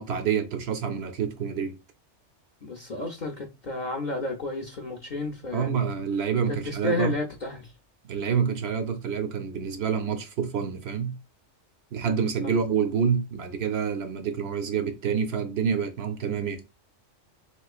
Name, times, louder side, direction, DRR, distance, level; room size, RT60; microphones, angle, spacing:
voice 1, 0.0-1.8 5.5-7.1 8.0-11.2 11.9-16.6, right 6 dB, 65° right, 0.7 m, -27 dB
voice 2, 2.6-5.9 6.7-7.7 12.4-12.5, left 2 dB, 50° left, 0.6 m, -31 dB
3.4 x 3.0 x 2.3 m
omnidirectional pair, 1.3 m